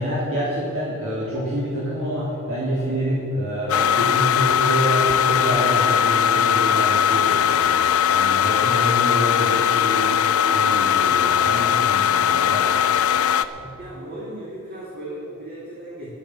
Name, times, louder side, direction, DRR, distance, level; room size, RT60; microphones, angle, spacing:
voice 1, 0.0-10.1 10.5-12.6 13.5-13.7, equal, 70° right, -8 dB, 3.4 m, -27 dB
sound 1, 3.7-13.4, left 9 dB, 70° left, 0.5 m, -19 dB
voice 2, 13.8-16.1, right 1 dB, 45° right, -6 dB, 2.8 m, -36 dB
11.5 x 10.5 x 7.6 m, 2.6 s
head